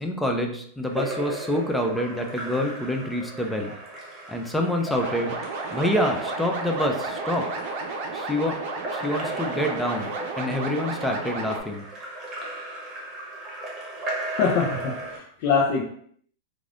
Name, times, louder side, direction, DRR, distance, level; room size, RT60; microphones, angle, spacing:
voice 1, 0.0-3.8 4.3-5.4 5.7-7.5 8.1-8.6 8.9-10.1 10.4-11.9, left 1 dB, 5° left, 2 dB, 0.5 m, -27 dB
Splash splatter / Drip / Trickle dribble, 0.8-15.2, right 2 dB, 30° right, 1.0 m, -36 dB
sound 1, 4.9-11.6, right 3 dB, 55° right, 0.6 m, -33 dB
voice 2, 14.3-15.9, left 5 dB, 55° left, -2 dB, 0.6 m, -24 dB
3.2 x 2.5 x 2.5 m, 0.63 s
hypercardioid pair, 110°, 0 cm